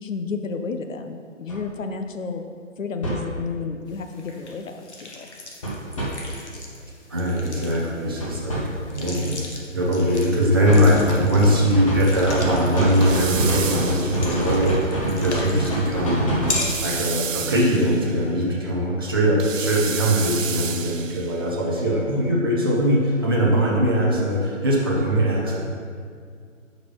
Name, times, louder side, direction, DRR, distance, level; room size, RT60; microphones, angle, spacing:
voice 1, 0.0-2.4 2.8-5.3, left 5 dB, 75° left, 6 dB, 0.8 m, -31 dB
sound 1, 1.5-1.6 3.0-3.3 5.6-6.1 8.2-8.6 10.7-16.6, right 1 dB, 25° left, 1.0 m, -25 dB
sound 2, 3.9-17.4, left 2 dB, 60° left, 1.4 m, -37 dB
voice 2, 7.1-25.6, equal, 20° right, -5 dB, 0.6 m, -21 dB
sound 3, 13.0-14.6 16.6-18.2 19.4-21.4, right 7 dB, 75° right, 0.6 m, -31 dB
9.3 x 5.2 x 3.3 m, 2.2 s
hypercardioid pair, 160°, 39 cm